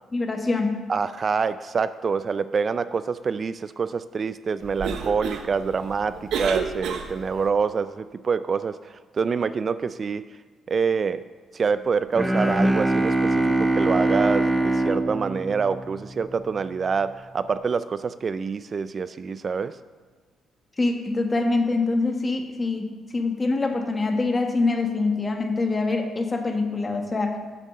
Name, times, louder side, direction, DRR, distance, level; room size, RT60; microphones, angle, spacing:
voice 1, 0.1-0.7 20.8-27.4, left 3 dB, 25° left, 4 dB, 1.4 m, -24 dB
voice 2, 0.9-8.8 9.1-10.2 10.7-11.2 11.5-19.7, right 5 dB, 40° right, 13 dB, 0.3 m, -26 dB
Cough, 4.6-7.5, right 6 dB, 75° right, 0.9 m, -31 dB
Bowed string instrument, 12.1-16.4, right 2 dB, 10° right, 0.6 m, -23 dB
8.4 x 6.6 x 6.5 m, 1.5 s
cardioid pair, 90°, 0 cm